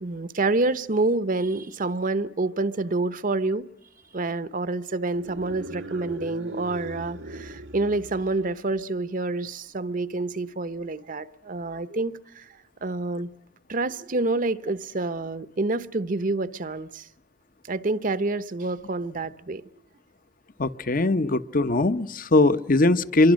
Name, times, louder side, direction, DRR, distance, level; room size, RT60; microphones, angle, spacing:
voice 1, 0.0-3.7 4.1-12.4 12.8-13.3 13.7-17.1 17.7-19.6, right 2 dB, 45° right, 0.8 m, -28 dB
sound 1, 5.1-8.7, right 2 dB, 90° right, 1.5 m, -39 dB
voice 2, 20.6-23.3, left 2 dB, 45° left, 0.9 m, -21 dB
26.5 x 23.5 x 6.4 m
head